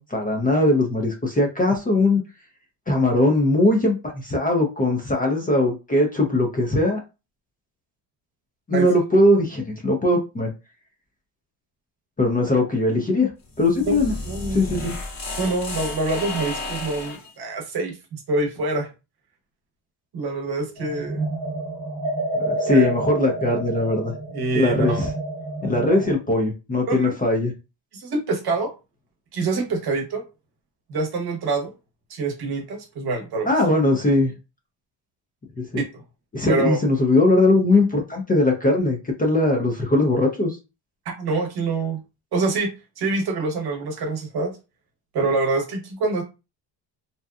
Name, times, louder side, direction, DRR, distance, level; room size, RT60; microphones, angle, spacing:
voice 1, 0.0-2.2 2.9-7.0 8.7-10.5 12.2-13.3 13.6-14.1 14.5-14.9 22.4-24.1 24.5-25.1 25.6-27.5 33.5-34.3 35.6-35.8 36.3-40.6, left 2 dB, 20° left, 0.5 m, -20 dB
sound 1, 13.5-17.3, left 2 dB, 40° left, 0.9 m, -32 dB
voice 2, 14.3-14.6 15.4-18.9 20.1-21.3 22.7-22.9 24.3-25.0 25.9-26.0 26.9-27.1 27.9-28.7 29.3-30.2 30.9-31.7 32.1-33.5 35.8-36.0 36.5-36.8 41.2-42.0 42.3-44.6 45.1-46.2, right 3 dB, 55° right, 0.9 m, -25 dB
sound 2, 20.8-26.1, right 1 dB, 30° right, 1.0 m, -29 dB
2.7 x 2.2 x 2.3 m
cardioid pair, 105°, 46 cm